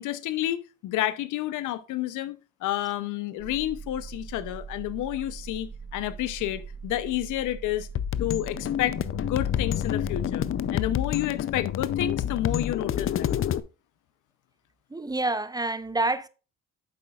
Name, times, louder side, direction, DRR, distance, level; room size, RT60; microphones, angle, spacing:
voice 1, 0.0-7.9 8.2-10.5 10.7-13.3, left 13 dB, 90° left, 0.7 m, -30 dB
sound 1, 3.4-10.9, right 5 dB, 45° right, 1.0 m, -41 dB
sound 2, 8.0-13.6, left 10 dB, 45° left, 0.5 m, -28 dB
voice 2, 14.9-16.3, right 2 dB, 15° right, 0.4 m, -27 dB
9.0 x 7.0 x 2.4 m
cardioid pair, 90°, 30 cm